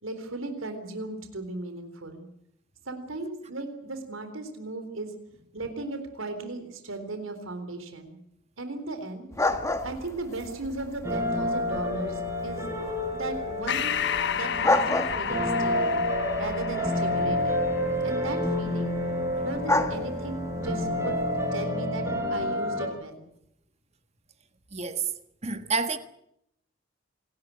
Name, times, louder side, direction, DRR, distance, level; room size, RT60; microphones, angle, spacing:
voice 1, 0.0-2.3 2.9-5.1 5.5-8.2 8.6-9.3 9.8-12.7 13.1-16.0 16.4-17.7 18.0-18.9 19.4-23.3, right 2 dB, 80° right, 4.0 m, -36 dB
sound 1, 9.3-21.5, left 2 dB, 15° left, 1.7 m, -33 dB
sound 2, 11.0-22.9, left 1 dB, 15° right, 4.8 m, -29 dB
Breathing, 13.7-18.6, left 8 dB, 55° left, 1.1 m, -32 dB
voice 2, 24.7-25.1 25.4-26.0, right 4 dB, 30° right, 1.5 m, -28 dB
27.5 x 13.0 x 9.3 m
head